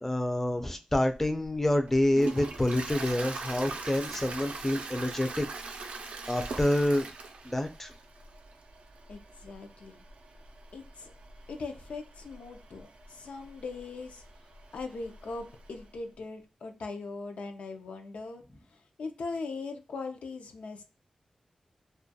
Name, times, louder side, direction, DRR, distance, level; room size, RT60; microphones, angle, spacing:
voice 1, 0.0-5.5 6.3-7.1 7.4-7.9, left 1 dB, 15° left, 6 dB, 0.4 m, -27 dB
Toilet flush, 1.2-15.9, right 3 dB, 80° right, 0.4 m, -43 dB
voice 2, 9.1-10.0 10.7-11.1 11.5-14.2 14.7-18.4 19.0-20.8, left 3 dB, 85° left, 5 dB, 0.4 m, -40 dB
2.2 x 2.2 x 2.6 m, 0.34 s
wide cardioid pair, 85°, 2 cm